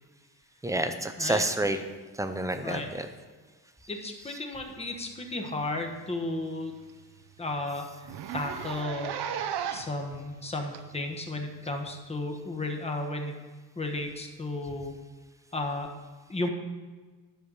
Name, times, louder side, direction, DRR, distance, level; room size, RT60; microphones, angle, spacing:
voice 1, 0.6-1.8 2.2-3.1, right 1 dB, 10° right, 8 dB, 0.5 m, -29 dB
voice 2, 3.9-6.7 7.4-9.2 9.7-13.4 13.8-14.9 15.5-15.9 16.3-16.5, left 2 dB, 15° left, 3 dB, 1.0 m, -34 dB
Zipper (clothing), 5.4-5.6 5.9-6.0 6.4-6.5 6.9-7.0 7.2-7.4 8.0-10.0 10.7-10.8 11.9-12.0, right 9 dB, 85° right, 0.8 m, -35 dB
11.5 x 6.4 x 5.4 m, 1.4 s
cardioid pair, 175°, 39 cm